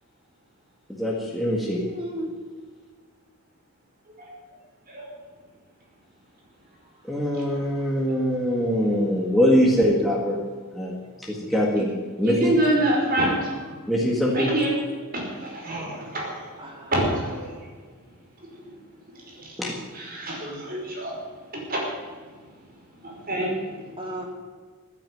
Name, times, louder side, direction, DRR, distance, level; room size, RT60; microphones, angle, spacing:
voice 1, 1.0-1.8 7.1-10.4 10.7-11.9 12.2-12.5 13.9-14.5 19.6-19.7, equal, ahead, -2 dB, 1.9 m, -23 dB
voice 2, 1.6-2.3 6.8-6.9 7.3-7.9 16.6-16.9 24.0-24.2, equal, 25° right, 1 dB, 3.1 m, -36 dB
voice 3, 12.2-13.7 14.3-14.8 15.1-16.4 16.9-17.5 18.4-18.5 19.2-19.5 19.9-21.1 21.5-21.8 23.0-23.5, right 1 dB, 40° right, -2 dB, 5.3 m, -26 dB
15.0 x 9.7 x 9.4 m, 1.5 s
head